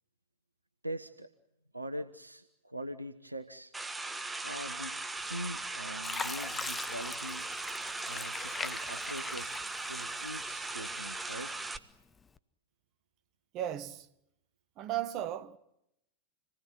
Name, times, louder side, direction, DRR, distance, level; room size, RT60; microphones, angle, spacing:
voice 1, 0.8-1.3 1.7-3.7 4.4-5.0 5.2-7.5 8.0-9.6 9.9-11.5, equal, 85° right, 1.1 m, -42 dB
sound 1, 3.7-11.8, right 3 dB, 10° right, 1.3 m, -39 dB
Fill (with liquid), 5.3-5.6 6.0-10.4 10.9-11.7 12.2-12.4, left 4 dB, 15° left, 1.0 m, -41 dB
voice 2, 13.5-14.1 14.8-15.6, right 11 dB, 35° right, 1.4 m, -35 dB
27.5 x 19.5 x 9.3 m
figure-of-eight pair, 90°, 0 cm